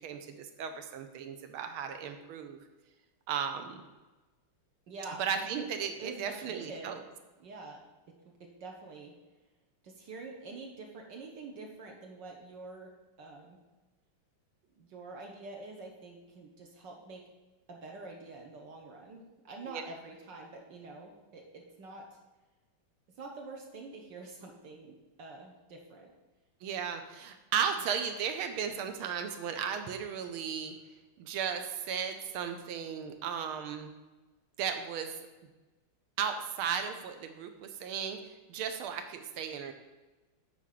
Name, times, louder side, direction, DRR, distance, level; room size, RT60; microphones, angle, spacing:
voice 1, 0.0-2.6 3.3-3.9 5.2-7.0 19.6-19.8 26.6-30.7 31.2-33.9 34.6-35.1 36.2-39.7, right 7 dB, 80° right, 7 dB, 1.6 m, -35 dB
voice 2, 4.9-5.7 6.0-7.0 7.4-7.8 8.2-9.1 9.8-12.9 13.2-13.6 14.7-17.2 17.7-22.2 23.1-26.1, right 3 dB, 60° right, 1 dB, 1.5 m, -46 dB
8.7 x 4.2 x 5.9 m, 1.2 s
omnidirectional pair, 2.4 m